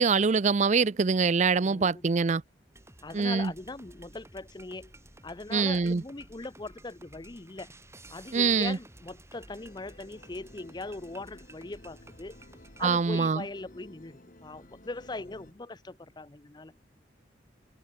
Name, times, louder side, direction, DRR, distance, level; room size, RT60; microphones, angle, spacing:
voice 1, 0.0-2.4 3.1-3.5 5.5-6.0 8.3-8.8 12.8-13.4, right 5 dB, 40° right, 0.5 m, -24 dB
voice 2, 1.6-2.1 3.0-4.9 5.2-7.7 8.1-12.4 12.8-16.7, left 2 dB, 25° left, 0.6 m, -40 dB
sound 1, 2.7-13.0, right 2 dB, 15° right, 2.9 m, -53 dB
sound 2, 9.5-15.5, left 1 dB, 45° left, 2.3 m, -54 dB
head